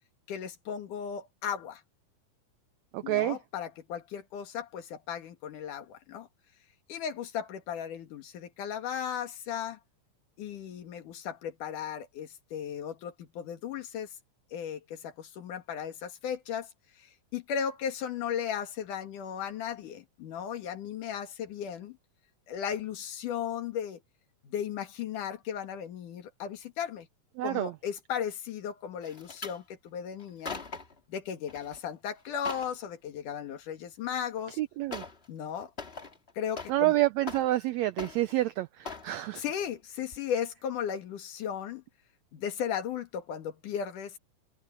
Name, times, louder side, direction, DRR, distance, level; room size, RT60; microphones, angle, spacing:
voice 1, 0.3-1.8 3.0-6.3 6.9-9.8 10.4-14.1 14.5-16.7 17.0-22.0 22.5-24.0 24.4-27.1 27.4-30.6 31.1-34.6 35.3-35.7 36.4-37.0 39.3-41.8 42.3-44.2, left 8 dB, 70° left, 3.3 m, -36 dB
voice 2, 2.9-3.4 27.4-27.7 34.6-35.0 36.7-39.4, right 16 dB, 90° right, 1.5 m, -28 dB
sound 1, 29.0-29.6 30.2-31.0 31.5-31.8 32.2-32.8 34.1-34.2 34.9-35.3 35.6-36.9 37.2-37.7 38.0-38.5 38.8-39.1 39.6-39.8 40.1-40.2, left 4 dB, 25° left, 1.4 m, -41 dB
omnidirectional pair, 3.8 m